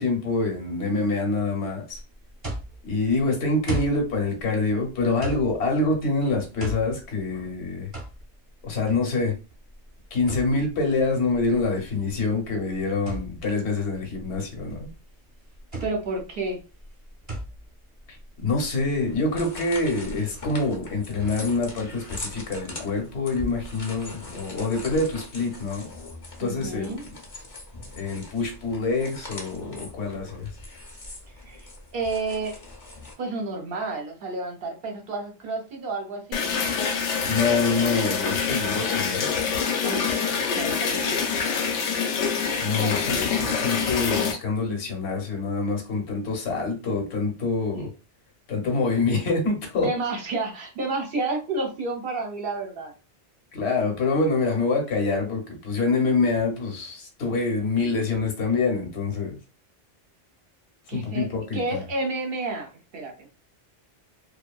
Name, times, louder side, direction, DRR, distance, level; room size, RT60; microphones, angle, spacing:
voice 1, 0.0-2.0 2.8-7.9 8.6-9.4 10.1-14.9 18.4-25.9 26.4-27.1 28.0-30.5 37.3-39.3 42.6-47.9 48.5-49.9 53.5-59.4 60.9-61.8, left 3 dB, 70° left, 1.1 m, -26 dB
sound 1, 1.9-19.2, right 1 dB, 30° right, 0.9 m, -38 dB
voice 2, 15.8-16.6 26.4-27.0 31.4-32.6 33.2-36.8 39.8-41.4 42.7-43.6 47.7-47.9 49.8-52.9 60.9-61.3 61.5-63.3, right 3 dB, 60° right, 0.9 m, -31 dB
sound 2, 19.1-33.1, left 2 dB, 35° left, 0.6 m, -41 dB
sound 3, 36.3-44.3, left 6 dB, 90° left, 1.0 m, -26 dB
2.6 x 2.4 x 2.3 m
omnidirectional pair, 1.2 m